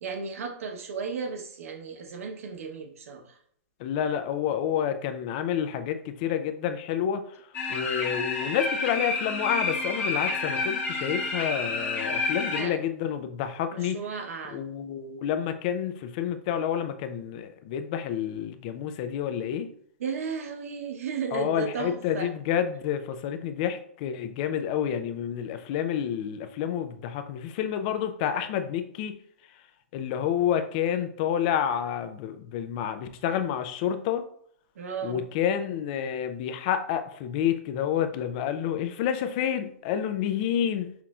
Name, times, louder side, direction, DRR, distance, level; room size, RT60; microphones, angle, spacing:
voice 1, 0.0-3.4 12.6-12.8 13.7-14.6 20.0-22.3 34.8-35.3, right 5 dB, 75° right, 5 dB, 0.8 m, -34 dB
voice 2, 3.8-14.0 14.5-19.7 21.3-29.2 29.9-34.2 35.0-40.9, left 9 dB, 35° left, 9 dB, 0.4 m, -29 dB
sound 1, 7.5-12.6, left 3 dB, 20° left, 1.2 m, -29 dB
5.8 x 2.5 x 2.3 m, 0.63 s
hypercardioid pair, 155°, 8 cm